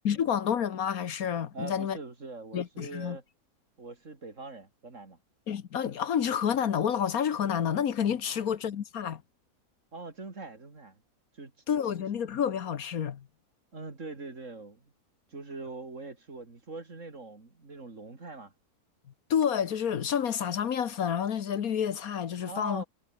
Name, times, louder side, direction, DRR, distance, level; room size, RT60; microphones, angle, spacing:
voice 1, 0.0-2.0 2.5-3.2 5.5-9.2 11.7-13.3 19.3-22.8, left 8 dB, 65° left, 1.5 m, -29 dB
voice 2, 1.5-3.2 3.8-5.2 8.3-8.4 9.9-11.0 11.3-11.5 13.7-14.9 15.3-18.5 22.4-22.9, right 3 dB, 50° right, 3.5 m, -42 dB
omnidirectional pair, 1.6 m